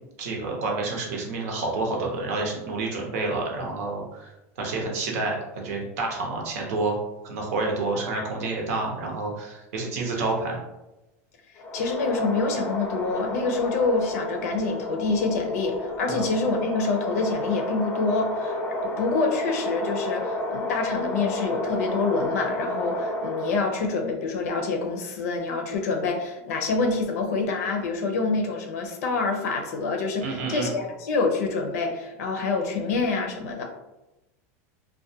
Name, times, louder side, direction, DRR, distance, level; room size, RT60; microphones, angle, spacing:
voice 1, 0.2-4.3 4.6-7.0 7.2-10.6 16.1-16.3 30.2-30.7, right 3 dB, 75° right, 0 dB, 0.7 m, -29 dB
sound 1, 11.6-24.0, left 1 dB, 30° left, 0.4 m, -31 dB
voice 2, 11.7-33.6, left 3 dB, 80° left, 3 dB, 0.5 m, -26 dB
2.3 x 2.1 x 2.8 m, 0.97 s
supercardioid pair, 130°, 8 cm